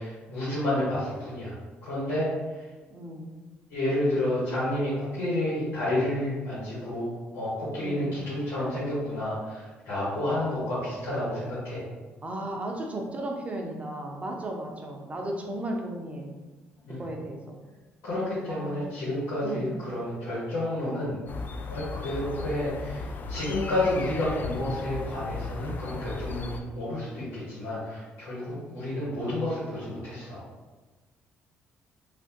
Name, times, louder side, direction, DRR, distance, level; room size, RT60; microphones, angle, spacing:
voice 1, 0.0-2.3 2.5-2.7 3.7-11.8 16.9-17.0 18.0-21.2 21.7-30.4, left 1 dB, 85° left, -10 dB, 1.2 m, -30 dB
voice 2, 2.9-3.3 7.8-8.1 12.2-16.3 17.0-17.6 18.5-18.8 19.4-19.7 28.5-28.7, right 1 dB, 30° right, 1 dB, 0.6 m, -35 dB
sound 1, 21.3-26.6, left 3 dB, 45° left, 0.3 m, -36 dB
3.2 x 2.4 x 2.9 m, 1.3 s
supercardioid pair, 75°, 5 cm